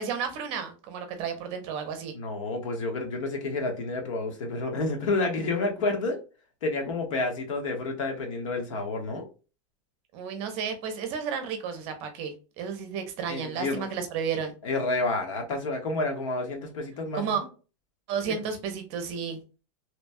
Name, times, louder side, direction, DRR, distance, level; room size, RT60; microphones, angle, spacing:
voice 1, 0.0-2.1 10.1-14.5 17.1-17.4 18.1-19.4, right 7 dB, 35° right, 0.7 m, -32 dB
voice 2, 2.1-6.2 6.6-9.3 13.3-13.8 14.6-17.5, left 2 dB, 70° left, 1.2 m, -29 dB
3.0 x 2.2 x 2.6 m
supercardioid pair, 160°, 17 cm